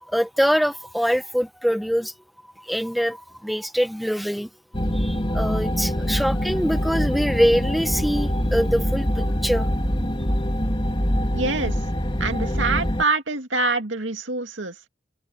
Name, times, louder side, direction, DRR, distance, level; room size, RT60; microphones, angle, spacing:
voice 1, 0.1-2.1 2.7-4.5 4.9-9.7, equal, ahead, 1.2 m, -24 dB
sound 1, 4.7-13.0, equal, 25° left, 3.5 m, -24 dB
voice 2, 11.3-11.8 12.2-14.9, right 3 dB, 85° right, 2.3 m, -25 dB
head